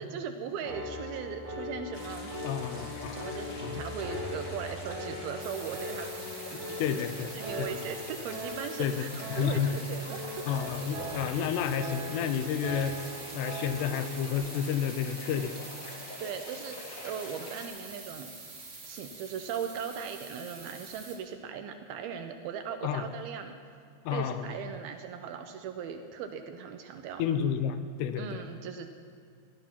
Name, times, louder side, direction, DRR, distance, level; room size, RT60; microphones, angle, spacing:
voice 1, 0.0-2.3 3.2-6.1 6.5-7.1 7.3-10.2 16.2-18.3 18.8-23.6 24.1-27.2 28.2-28.9, right 7 dB, 80° right, 6 dB, 2.3 m, -38 dB
Piano, 0.6-14.3, equal, 55° right, 3.6 m, -40 dB
sound 1, 1.9-17.7, left 2 dB, 50° left, 1.0 m, -45 dB
voice 2, 2.4-3.8 6.8-7.3 7.6-7.7 8.8-9.0 9.3-9.8 10.5-15.6 22.8-23.1 24.1-24.5 27.2-28.4, left 8 dB, 85° left, 10 dB, 2.7 m, -31 dB
sound 2, 5.4-21.2, right 3 dB, 35° right, 1.6 m, -46 dB
16.0 x 11.0 x 5.8 m, 2.2 s
omnidirectional pair, 4.8 m